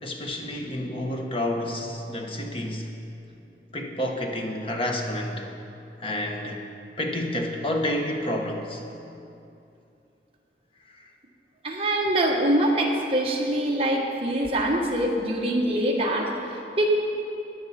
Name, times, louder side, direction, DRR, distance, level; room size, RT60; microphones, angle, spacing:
voice 1, 0.0-2.9 3.7-5.5 6.0-6.6 7.0-8.8, left 1 dB, 30° left, 2 dB, 1.0 m, -29 dB
voice 2, 11.6-16.9, right 1 dB, 30° right, -1 dB, 1.3 m, -24 dB
14.5 x 9.4 x 4.3 m, 2.7 s
head